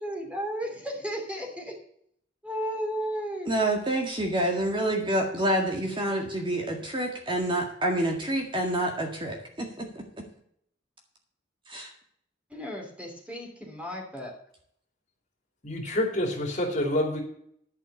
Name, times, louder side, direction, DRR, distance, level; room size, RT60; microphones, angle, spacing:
voice 1, 0.0-1.8 2.4-3.5 12.5-14.4, equal, 5° right, 1 dB, 2.9 m, -34 dB
voice 2, 3.5-10.0 11.7-11.9, right 1 dB, 25° right, 2 dB, 1.9 m, -28 dB
voice 3, 15.6-17.2, left 1 dB, 40° left, 1 dB, 2.8 m, -27 dB
11.5 x 6.2 x 8.0 m, 0.67 s
head